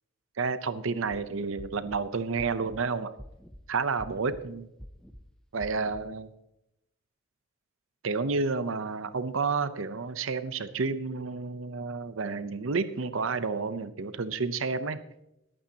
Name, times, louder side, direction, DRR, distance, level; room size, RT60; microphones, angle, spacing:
voice 1, 0.4-3.1 3.7-4.7 5.5-6.3 8.0-15.0, right 4 dB, 75° right, 12 dB, 0.7 m, -30 dB
sound 1, 1.0-1.2 1.6-2.0 2.4-2.8 3.2-3.6 4.0-4.4 4.8-5.2 5.6-6.0, equal, 5° left, 0.6 m, -46 dB
21.5 x 8.7 x 2.8 m, 0.84 s
head